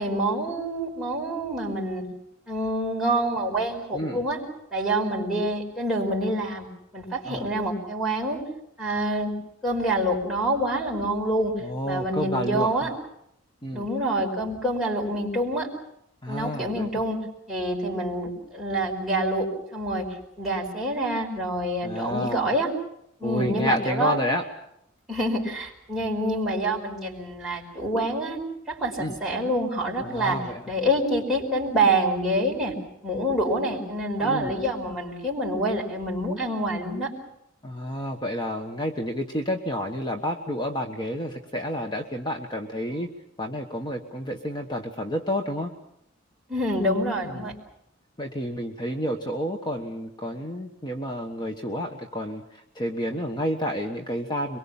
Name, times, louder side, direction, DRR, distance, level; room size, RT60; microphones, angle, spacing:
voice 1, 0.0-2.0 2.5-4.4 4.7-6.7 6.9-8.4 8.8-9.3 9.6-11.5 11.9-12.9 13.7-15.7 16.3-17.2 17.5-19.5 19.7-20.1 20.4-22.7 23.2-24.2 25.1-28.4 28.7-30.4 30.7-32.7 33.0-37.1 46.5-47.5, right 1 dB, ahead, -4 dB, 5.0 m, -26 dB
voice 2, 11.6-12.9 13.6-13.9 16.2-16.9 21.8-22.5 23.2-24.4 29.0-29.2 30.0-30.6 34.2-34.6 37.6-43.1 43.4-45.7 47.2-47.5 48.2-54.6, equal, 20° left, 4 dB, 1.3 m, -30 dB
24.0 x 22.5 x 7.2 m, 0.76 s
head